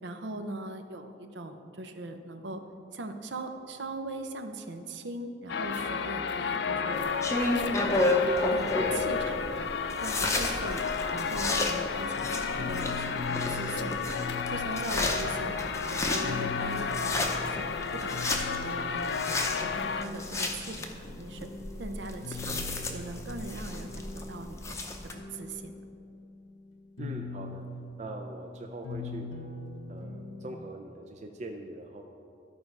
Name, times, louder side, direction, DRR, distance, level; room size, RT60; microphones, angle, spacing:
voice 1, 0.0-2.6 2.9-9.7 10.0-10.8 11.1-14.0 14.5-17.7 17.9-19.3 19.6-21.5 21.8-24.8 25.1-25.7, right 2 dB, 70° right, 7 dB, 0.7 m, -40 dB
sound 1, 5.5-20.1, left 5 dB, 65° left, 0.4 m, -32 dB
sound 2, 6.9-25.1, left 2 dB, 15° left, 0.6 m, -32 dB
sound 3, 12.2-30.5, left 3 dB, 85° left, 1.0 m, -42 dB
voice 2, 27.0-27.6 28.0-29.3 29.9-32.0, right 2 dB, 40° right, 3 dB, 0.4 m, -42 dB
13.0 x 4.7 x 5.3 m, 2.7 s
head